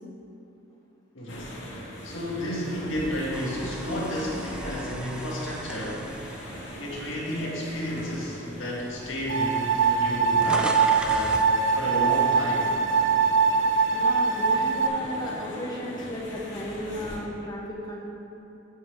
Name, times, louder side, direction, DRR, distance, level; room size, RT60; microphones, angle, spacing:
voice 1, 1.1-6.1 6.8-11.4 11.7-12.8, equal, 85° left, -5 dB, 1.9 m, -32 dB
sound 1, 1.3-17.2, equal, 70° left, 1.8 m, -41 dB
sound 2, 3.3-7.6 8.1-8.3 9.2-9.3 9.5-11.5, right 1 dB, 5° right, 0.3 m, -38 dB
sound 3, 9.3-14.9, right 5 dB, 70° right, 0.4 m, -22 dB
voice 2, 13.9-18.1, equal, 20° left, -4 dB, 1.3 m, -35 dB
13.5 x 5.7 x 3.3 m, 2.8 s
head